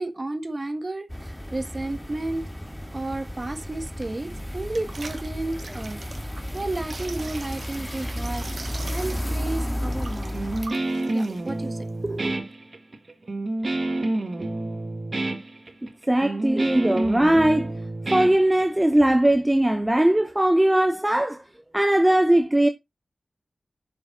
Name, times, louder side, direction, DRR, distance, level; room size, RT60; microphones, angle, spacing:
voice 1, 0.0-2.5 2.9-10.5 11.1-12.4, right 2 dB, 35° right, 1.5 m, -32 dB
sound 1, 1.1-10.7, equal, 5° left, 2.1 m, -33 dB
sound 2, 4.3-12.3, right 3 dB, 70° right, 1.4 m, -44 dB
Guitar, 10.3-19.0, right 2 dB, 50° right, 1.8 m, -28 dB
voice 2, 16.1-17.7 18.1-21.4 21.7-22.7, right 1 dB, 15° right, 0.8 m, -19 dB
7.1 x 6.1 x 3.8 m
wide cardioid pair, 60°, 0 cm